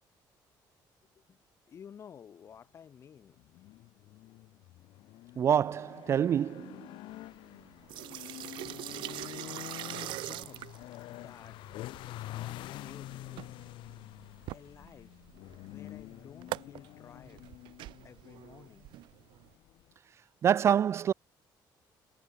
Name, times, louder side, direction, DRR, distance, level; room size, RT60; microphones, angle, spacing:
voice 1, 1.7-3.4 9.9-10.6 11.0-11.6 11.9-13.5 14.5-15.1 15.6-17.4 18.0-18.9, left 8 dB, 35° left, 7.7 m, -53 dB
sound 1, 3.3-19.9, left 16 dB, 85° left, 3.5 m, -47 dB
voice 2, 5.4-6.9 20.4-21.1, right 9 dB, 35° right, 0.4 m, -26 dB
sound 2, 7.1-19.5, right 16 dB, 85° right, 2.3 m, -44 dB
cardioid pair, 180°, 8 cm